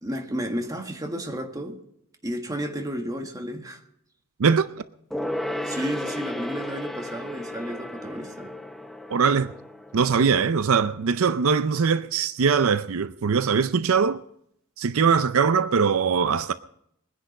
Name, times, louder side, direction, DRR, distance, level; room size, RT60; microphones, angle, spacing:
voice 1, 0.0-1.8 2.2-3.8 5.6-8.5, equal, 15° right, 1.7 m, -32 dB
Gong, 5.1-11.0 11.3-11.4, left 1 dB, ahead, 0.7 m, -34 dB
voice 2, 9.1-9.5 9.9-14.2 14.8-16.5, right 6 dB, 65° right, 0.5 m, -21 dB
22.0 x 10.0 x 5.3 m
head